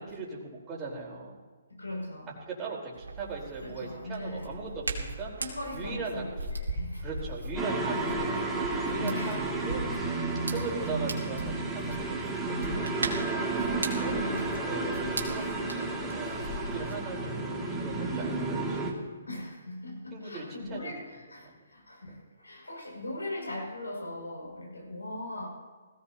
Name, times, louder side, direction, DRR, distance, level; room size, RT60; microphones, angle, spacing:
voice 1, 0.0-1.4 2.5-5.3 5.7-6.5 7.0-9.8 10.5-13.2 14.0-18.8 19.1-19.2 20.1-20.9, right 3 dB, 20° right, -3 dB, 4.1 m, -39 dB
voice 2, 1.7-2.4 3.6-4.5 5.4-7.1 8.9-9.5 13.8-14.5 19.3-25.5, left 1 dB, 90° left, -1 dB, 5.9 m, -39 dB
Hands, 2.9-16.9, right 2 dB, 80° right, 2.5 m, -39 dB
sound 1, 7.6-18.9, right 3 dB, 5° right, 2.3 m, -32 dB
20.0 x 16.5 x 2.9 m, 1.4 s
figure-of-eight pair, 135°, 0 cm